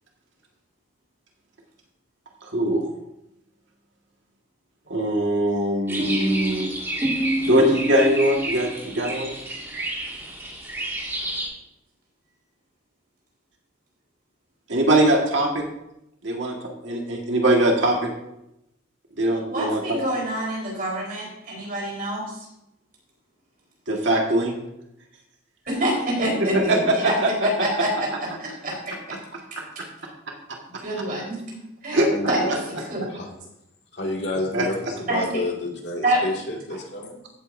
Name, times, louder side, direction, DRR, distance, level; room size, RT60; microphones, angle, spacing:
voice 1, 2.5-2.9 4.9-6.7 7.1-7.2 7.4-9.3 14.7-15.6 16.2-16.6 16.8-18.1 19.2-20.0 23.9-24.6 26.4-27.3 31.9-32.3 34.5-34.6, right 1 dB, 65° right, 0 dB, 1.7 m, -21 dB
sound 1, 5.9-11.5, right 1 dB, 10° right, 2.0 m, -28 dB
voice 2, 19.5-22.5 25.7-27.9 28.2-29.0 30.8-31.6 31.8-32.0 32.3-33.0 35.1-35.4 36.0-36.2, right 1 dB, 45° right, -3 dB, 4.1 m, -26 dB
voice 3, 32.1-32.5 33.1-33.3 33.9-37.2, left 2 dB, 55° left, -1 dB, 2.1 m, -30 dB
15.0 x 8.5 x 2.6 m, 0.85 s
head